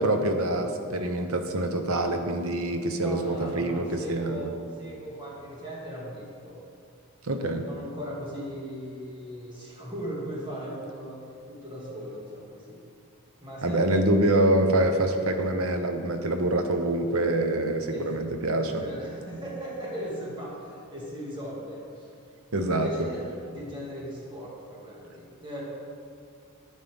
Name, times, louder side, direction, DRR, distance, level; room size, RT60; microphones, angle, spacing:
voice 1, 0.0-4.5 7.2-7.6 13.6-18.8 22.5-22.9, right 1 dB, 75° right, 6 dB, 0.9 m, -25 dB
voice 2, 3.0-6.6 7.7-12.8 13.4-13.8 17.9-18.2 18.6-22.1 22.5-23.2 23.5-25.6, equal, 20° right, -5 dB, 2.1 m, -38 dB
10.0 x 9.4 x 3.6 m, 2.4 s
head